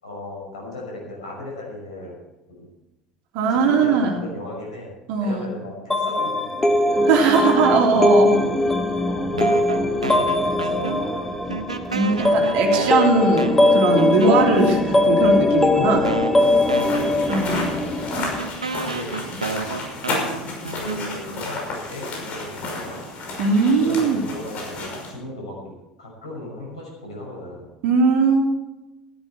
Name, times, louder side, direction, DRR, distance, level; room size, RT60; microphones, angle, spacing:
voice 1, 0.0-2.2 2.6-2.7 3.5-4.9 5.2-7.3 9.1-11.3 12.1-13.2 15.8-18.2 18.8-19.8 20.8-23.0 23.8-27.7, left 2 dB, 75° left, -1 dB, 5.9 m, -36 dB
voice 2, 3.3-4.2 5.1-5.5 7.1-8.4 11.9-16.0 17.3-17.7 23.4-24.2 27.8-28.5, right 4 dB, 55° right, 1 dB, 3.1 m, -19 dB
sound 1, 5.9-18.5, left 2 dB, 10° left, 1.5 m, -20 dB
sound 2, 9.4-11.2 11.5-14.7 15.5-15.6 16.0-21.4, right 4 dB, 85° right, 0.8 m, -31 dB
sound 3, 16.4-25.1, left 2 dB, 45° left, 5.8 m, -32 dB
15.0 x 13.0 x 4.6 m, 0.99 s
figure-of-eight pair, 70°, 3 cm